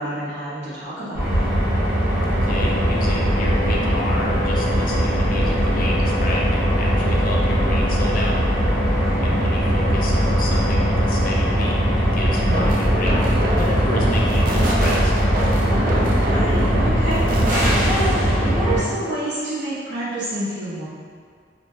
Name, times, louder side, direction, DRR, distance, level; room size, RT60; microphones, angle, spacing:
voice 1, 0.0-1.6 9.0-9.4 12.4-12.9 15.7-17.2 17.5-20.8, right 1 dB, 65° right, -9 dB, 0.9 m, -28 dB
sound 1, 1.1-18.8, equal, 10° right, 1.0 m, -20 dB
voice 2, 2.3-8.4 9.2-15.1, left 1 dB, 50° left, -3 dB, 0.4 m, -30 dB
sound 2, 2.3-19.0, left 1 dB, 15° left, 0.7 m, -28 dB
sound 3, 12.5-18.1, right 1 dB, 50° right, 0.3 m, -26 dB
2.7 x 2.2 x 3.0 m, 2.1 s
head